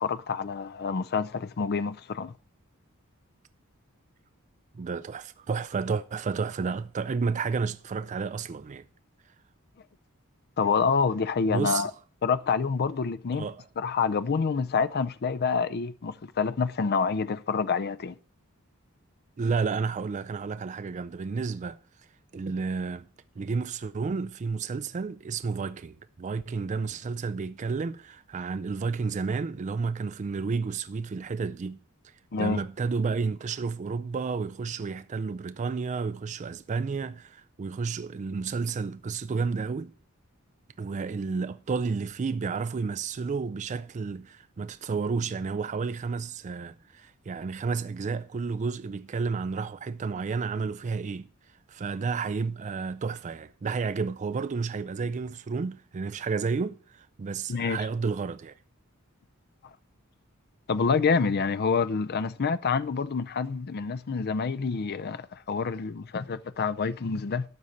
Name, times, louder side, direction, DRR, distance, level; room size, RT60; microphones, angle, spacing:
voice 1, 0.0-2.3 10.6-11.9 12.2-13.5 13.8-18.2 32.3-32.6 57.5-57.8 60.7-67.4, left 5 dB, 50° left, 0.5 m, -27 dB
voice 2, 4.8-8.8 11.5-11.9 13.3-13.6 19.4-21.8 22.3-23.0 23.4-31.8 32.4-39.9 40.8-51.3 51.7-58.5, right 4 dB, 35° right, 0.3 m, -31 dB
12.0 x 4.2 x 7.7 m
head